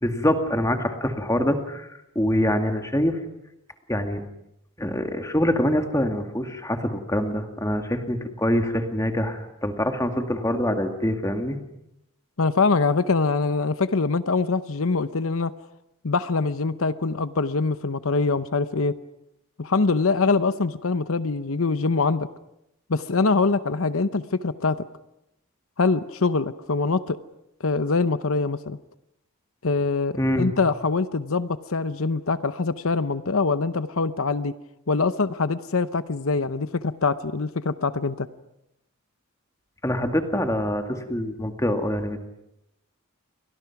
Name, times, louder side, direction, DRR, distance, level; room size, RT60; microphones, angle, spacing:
voice 1, 0.0-3.2 3.9-4.2 4.8-11.6 30.1-30.5 39.8-42.2, left 1 dB, 15° left, 5 dB, 2.2 m, -25 dB
voice 2, 12.4-15.5 16.0-19.0 19.6-22.3 22.9-24.8 25.8-27.2 27.6-28.8 29.6-34.5 34.9-38.3, left 4 dB, 75° left, 12 dB, 0.8 m, -24 dB
30.0 x 24.0 x 6.0 m, 0.84 s
head